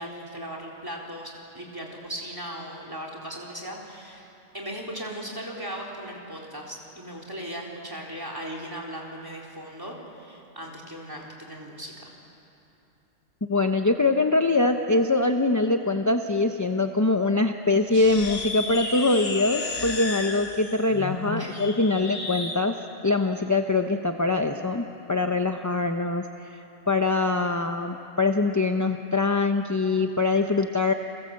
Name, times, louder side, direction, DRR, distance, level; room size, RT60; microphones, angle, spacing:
voice 1, 0.0-4.3 4.5-12.2 21.3-21.6, equal, 15° right, -2 dB, 3.9 m, -38 dB
voice 2, 13.4-22.8 23.0-26.6 26.9-30.9, left 3 dB, 20° left, 5 dB, 0.6 m, -23 dB
sound 1, 17.9-22.6, left 3 dB, 60° left, 2.1 m, -33 dB
29.5 x 23.0 x 7.7 m, 2.9 s
omnidirectional pair, 1.4 m